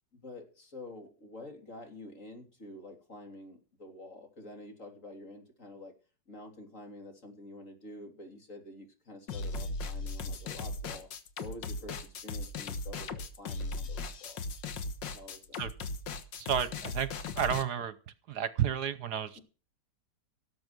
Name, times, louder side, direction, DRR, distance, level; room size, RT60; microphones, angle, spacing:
voice 1, 0.1-5.9 6.3-11.1 11.4-14.4 15.1-15.6 19.4-19.5, left 2 dB, 45° left, 3 dB, 3.8 m, -48 dB
sound 1, 9.3-17.6, left 3 dB, 80° left, 2.0 m, -37 dB
voice 2, 16.4-17.9 18.3-19.4, right 9 dB, 65° right, 14 dB, 1.4 m, -31 dB
17.5 x 8.0 x 6.1 m, 0.35 s
omnidirectional pair, 1.9 m